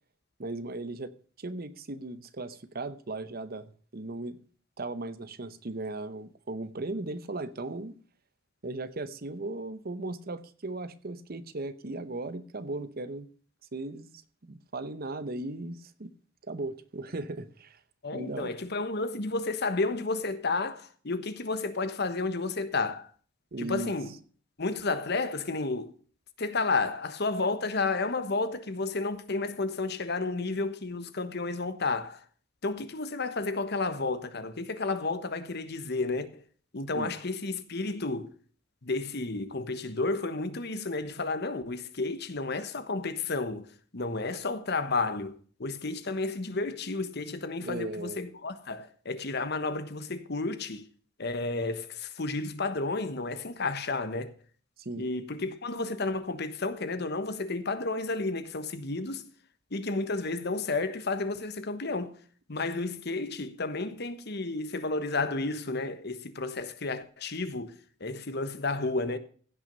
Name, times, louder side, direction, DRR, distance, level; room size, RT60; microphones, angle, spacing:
voice 1, 0.4-1.1 1.4-4.4 4.8-8.0 8.6-13.3 13.7-14.1 14.4-16.1 16.4-17.8 18.1-18.5 23.5-23.9 36.9-37.1 47.6-48.2 54.8-55.1, right 2 dB, 50° right, 0.9 m, -37 dB
voice 2, 18.0-23.1 23.6-24.1 24.6-25.9 26.4-32.2 32.6-36.4 36.7-38.3 38.8-45.3 45.6-50.9 51.2-54.3 55.0-59.2 59.7-62.2 62.5-69.2, left 3 dB, 55° left, 1.2 m, -32 dB
16.0 x 6.2 x 5.4 m
head